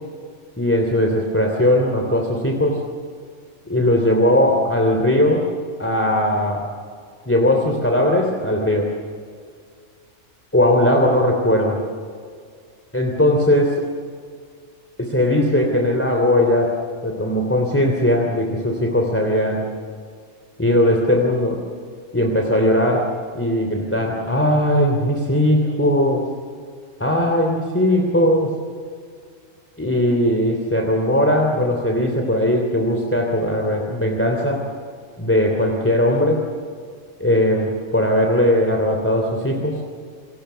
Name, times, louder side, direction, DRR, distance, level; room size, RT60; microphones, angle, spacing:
voice 1, 0.6-2.8 3.7-5.5 5.8-6.6 7.3-8.9 10.5-11.8 12.9-13.8 15.0-19.7 20.6-21.6 22.1-23.1 23.3-26.3 27.0-28.5 29.8-34.6 35.2-36.4 37.2-39.8, left 1 dB, 10° left, 1 dB, 3.0 m, -19 dB
29.0 x 23.5 x 6.8 m, 2.1 s
omnidirectional pair, 1.4 m